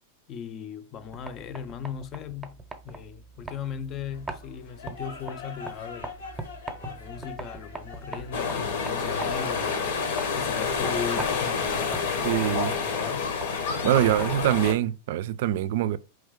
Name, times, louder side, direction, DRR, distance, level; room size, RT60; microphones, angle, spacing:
voice 1, 0.3-6.1 6.8-10.0 10.3-13.3 13.9-14.3, left 7 dB, 35° left, 0.5 m, -38 dB
sound 1, 1.0-14.7, right 3 dB, 10° right, 0.8 m, -43 dB
sound 2, 4.1-9.9, left 4 dB, 90° left, 1.2 m, -44 dB
sound 3, 8.3-14.7, left 5 dB, 70° left, 0.9 m, -28 dB
voice 2, 12.2-12.7 13.8-16.0, right 13 dB, 65° right, 0.4 m, -24 dB
4.3 x 3.2 x 3.6 m
supercardioid pair, 135°, 0 cm